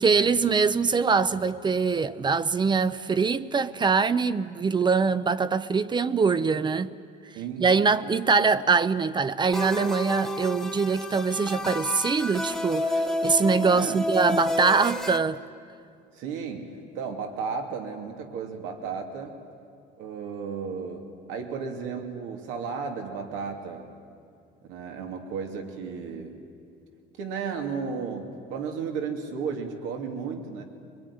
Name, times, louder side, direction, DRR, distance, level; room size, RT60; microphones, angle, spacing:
voice 1, 0.0-6.9 7.6-15.4, right 5 dB, 25° right, 0.6 m, -23 dB
voice 2, 7.3-7.6 13.6-14.0 16.1-19.4 20.0-23.9 24.7-26.4 27.2-30.6, right 5 dB, 85° right, 2.8 m, -34 dB
sound 1, 9.5-15.2, left 1 dB, ahead, 1.3 m, -30 dB
23.5 x 21.5 x 10.0 m
cardioid pair, 125°, 19 cm